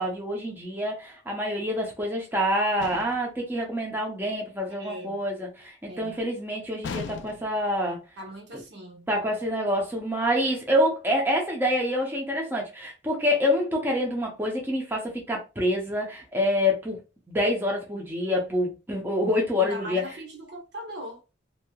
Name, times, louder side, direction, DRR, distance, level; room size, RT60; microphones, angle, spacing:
voice 1, 0.0-8.0 9.1-17.0 17.3-20.0, left 1 dB, 10° right, 0.6 m, -27 dB
sound 1, 2.8-3.4 6.8-7.7, left 5 dB, 70° left, 0.3 m, -37 dB
voice 2, 4.8-5.2 5.9-6.2 8.2-9.1 19.6-21.2, right 1 dB, 60° right, 0.9 m, -40 dB
3.1 x 2.7 x 2.3 m
head